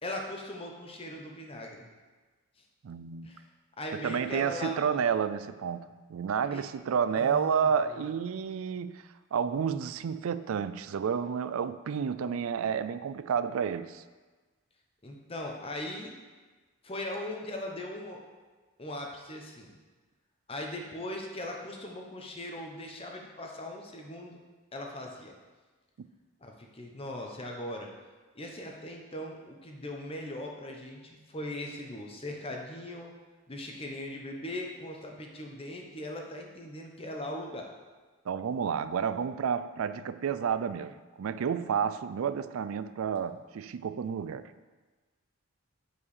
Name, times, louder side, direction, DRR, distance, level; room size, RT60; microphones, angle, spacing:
voice 1, 0.0-1.8 3.2-3.4 3.8-5.0 6.5-6.6 7.1-8.0 15.0-16.1 16.8-18.2 18.8-19.7 20.5-24.4 24.7-25.3 26.4-27.9 28.3-33.1 33.5-37.7, left 1 dB, 25° left, 1 dB, 1.0 m, -39 dB
voice 2, 2.8-3.3 3.9-9.0 9.3-14.0 26.0-26.1 38.3-44.5, right 7 dB, 75° right, 13 dB, 0.4 m, -30 dB
8.5 x 4.8 x 6.5 m, 1.3 s
head